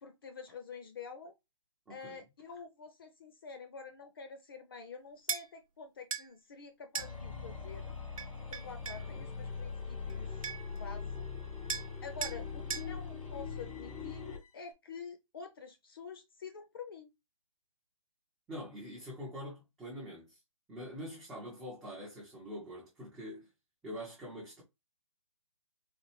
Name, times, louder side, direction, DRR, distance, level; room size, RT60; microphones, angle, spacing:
voice 1, 0.0-1.3 1.9-7.9 8.5-11.3 12.0-17.1, left 5 dB, 40° left, 0.6 m, -48 dB
voice 2, 1.9-2.2 9.0-9.3 18.5-20.4 20.7-23.5 23.8-24.6, equal, ahead, 0.4 m, -45 dB
sound 1, 5.3-5.5 6.1-6.3 6.9-7.1 8.2-9.0 10.1-10.2 10.4-10.8 11.7-11.9 12.2-12.4 12.7-12.9, right 5 dB, 80° right, 0.7 m, -37 dB
sound 2, 7.0-14.5, left 5 dB, 80° left, 1.9 m, -41 dB
4.1 x 2.4 x 2.9 m
hypercardioid pair, 160°, 17 cm